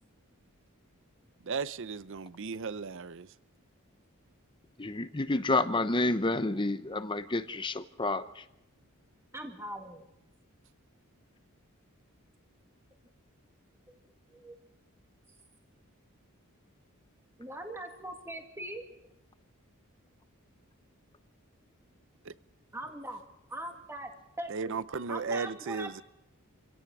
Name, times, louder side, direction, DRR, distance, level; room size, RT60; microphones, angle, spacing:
voice 1, 1.5-3.3 22.3-22.4 24.5-26.0, right 4 dB, 60° right, 0.6 m, -35 dB
voice 2, 4.8-8.4, left 2 dB, 20° left, 0.8 m, -29 dB
voice 3, 9.3-10.1 13.9-14.0 14.3-14.6 17.4-18.8 22.7-23.2 23.5-24.1 24.4-25.9, right 1 dB, 10° right, 2.0 m, -41 dB
27.0 x 17.0 x 6.1 m
head